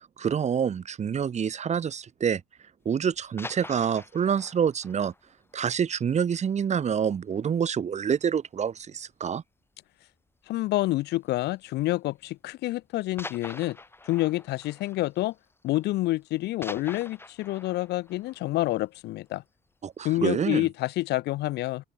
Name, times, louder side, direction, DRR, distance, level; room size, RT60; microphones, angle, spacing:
voice 1, 0.0-2.4 2.8-5.1 5.5-9.4 19.8-20.7, right 7 dB, 40° right, 5.9 m, -27 dB
sound 1, 3.1-6.7 7.0-7.1 7.5-7.7 8.0-8.1 8.9-9.4 10.6-10.8 11.7-11.8 13.2-16.0 16.2-19.4 19.8-19.9, left 2 dB, 15° left, 5.7 m, -45 dB
voice 2, 10.5-13.8 14.0-15.3 15.6-19.4 20.0-21.8, left 17 dB, 80° left, 1.7 m, -28 dB
open air
cardioid pair, 110°, 17 cm